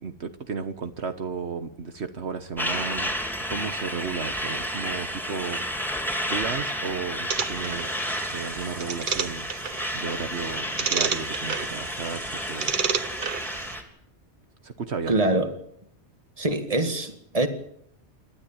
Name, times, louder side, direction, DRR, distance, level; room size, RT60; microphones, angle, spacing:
voice 1, 0.0-3.1 3.5-5.6 6.2-9.4 9.9-12.7 14.6-15.1, right 5 dB, 70° right, 1.4 m, -34 dB
Truck, 2.6-13.8, equal, ahead, 3.4 m, -31 dB
sound 1, 7.3-13.8, right 6 dB, 50° right, 1.1 m, -31 dB
voice 2, 15.1-15.5 16.4-17.5, right 2 dB, 30° right, 2.0 m, -24 dB
28.0 x 13.0 x 8.9 m
omnidirectional pair, 1.2 m